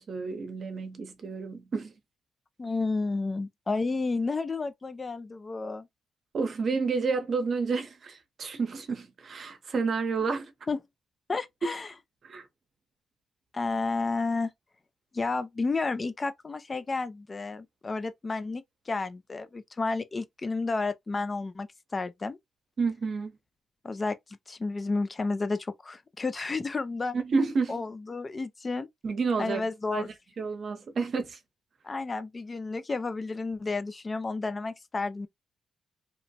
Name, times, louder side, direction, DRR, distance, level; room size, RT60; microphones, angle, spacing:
voice 1, 0.0-1.9 6.3-10.5 12.2-12.5 22.8-23.4 27.1-27.8 29.0-31.4, right 4 dB, 50° right, 0.7 m, -30 dB
voice 2, 2.6-5.9 10.7-10.8 11.3-11.9 13.5-14.5 15.1-21.7 21.9-22.4 23.8-24.2 24.5-27.1 27.7-28.9 29.4-30.1 31.8-35.3, left 3 dB, 30° left, 0.4 m, -31 dB
2.9 x 2.1 x 2.7 m
cardioid pair, 110°, 0 cm